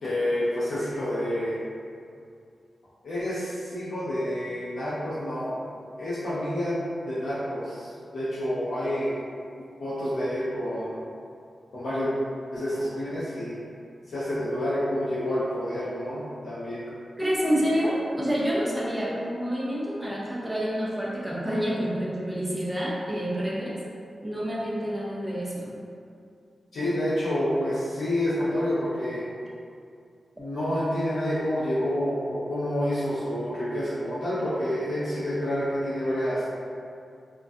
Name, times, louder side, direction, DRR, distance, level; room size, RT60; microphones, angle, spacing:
voice 1, 0.0-1.5 3.0-5.6 6.0-6.8 7.1-9.1 9.6-10.9 11.7-12.1 12.5-13.6 14.1-16.8 26.7-29.2 30.4-36.4, left 1 dB, 80° left, -11 dB, 0.5 m, -28 dB
voice 2, 17.2-23.7 24.2-25.7, equal, 5° right, -6 dB, 0.3 m, -28 dB
2.2 x 2.2 x 2.5 m, 2.4 s
wide cardioid pair, 165°, 0 cm